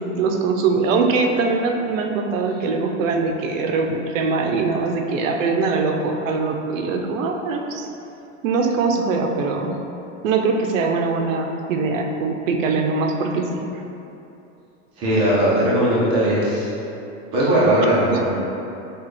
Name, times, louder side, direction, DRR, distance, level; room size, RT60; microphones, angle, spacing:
voice 1, 0.0-7.9 8.4-9.8 10.2-13.7 18.1-18.2, right 4 dB, 90° right, 3 dB, 0.6 m, -22 dB
voice 2, 15.0-16.7 17.3-18.3, right 1 dB, 15° right, -8 dB, 0.5 m, -18 dB
5.9 x 2.4 x 3.2 m, 2.8 s
supercardioid pair, 175°, 38 cm